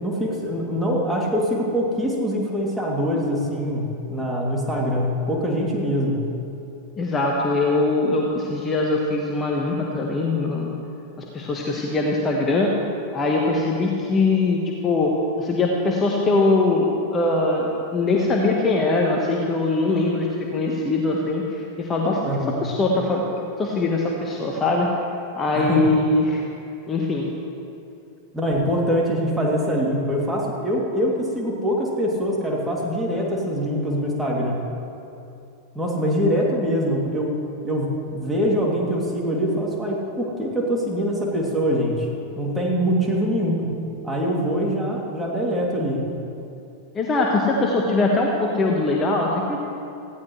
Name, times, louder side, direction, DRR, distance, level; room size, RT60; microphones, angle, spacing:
voice 1, 0.0-6.2 22.2-22.6 25.5-26.0 28.3-34.6 35.7-42.1 42.4-43.7 44.0-46.0, equal, 5° right, -3 dB, 2.8 m, -24 dB
voice 2, 7.0-10.7 11.2-12.7 13.1-22.2 22.6-23.2 23.6-24.9 25.3-26.4 26.9-27.3 46.9-49.6, left 2 dB, 20° left, -1 dB, 1.3 m, -22 dB
18.5 x 15.0 x 3.2 m, 2.7 s
figure-of-eight pair, 90°, 0 cm